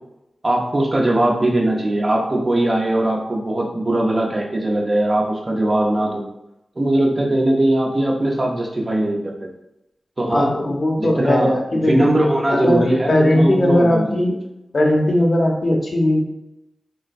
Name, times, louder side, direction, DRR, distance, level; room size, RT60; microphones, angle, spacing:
voice 1, 0.4-6.2 6.8-9.5 10.2-10.5 11.0-11.5 11.8-14.4, right 1 dB, 45° right, -1 dB, 0.7 m, -20 dB
voice 2, 10.3-12.1 12.5-14.4 14.7-16.2, left 1 dB, 55° left, 0 dB, 0.6 m, -18 dB
3.8 x 2.1 x 2.5 m, 0.89 s
cardioid pair, 40°, 0 cm